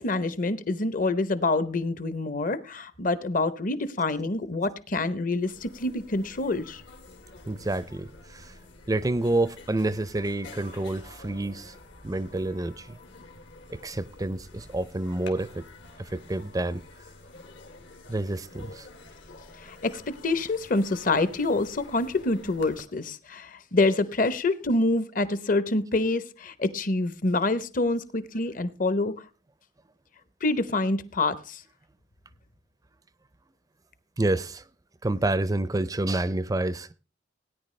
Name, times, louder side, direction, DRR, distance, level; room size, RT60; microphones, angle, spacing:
voice 1, 0.0-6.8 19.6-29.2 30.4-31.6, left 2 dB, 45° left, 0.8 m, -26 dB
sound 1, 5.1-5.2 5.3-22.8, left 2 dB, 75° left, 2.2 m, -49 dB
voice 2, 7.5-8.5 8.9-11.8 12.0-13.0 13.7-15.7 16.0-16.8 18.1-18.9 34.2-34.6 35.0-36.9, right 2 dB, 20° right, 0.5 m, -28 dB
17.5 x 9.7 x 3.2 m
head